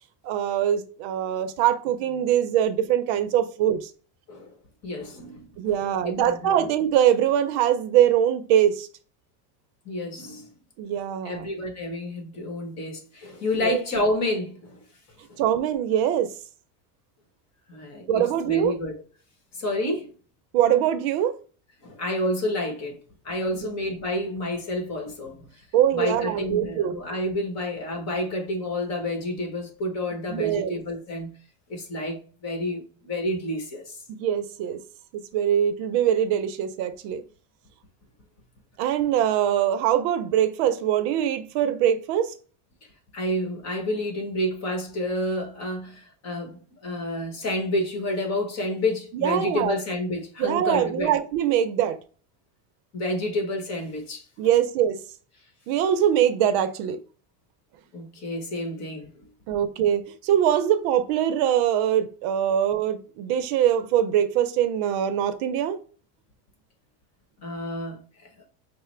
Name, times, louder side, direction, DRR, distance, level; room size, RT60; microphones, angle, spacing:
voice 1, 0.2-3.9 5.6-8.9 10.8-11.5 13.5-13.8 15.4-16.3 18.1-18.8 20.5-21.4 23.5-23.7 25.7-27.0 30.3-30.8 34.1-34.8 35.3-37.2 38.8-42.3 49.1-49.8 50.4-52.0 54.4-55.0 55.7-57.0 59.5-65.8, right 10 dB, 65° right, 0.6 m, -23 dB
voice 2, 4.8-5.7 6.0-6.6 9.8-10.5 11.2-14.8 17.7-18.9 19.6-20.1 21.8-23.0 23.2-25.5 25.9-31.3 31.7-34.0 43.1-51.1 52.9-54.2 57.9-59.1 67.4-68.0 68.4-68.5, left 1 dB, 35° left, 1.3 m, -29 dB
5.7 x 2.1 x 3.2 m
supercardioid pair, 130°, 43 cm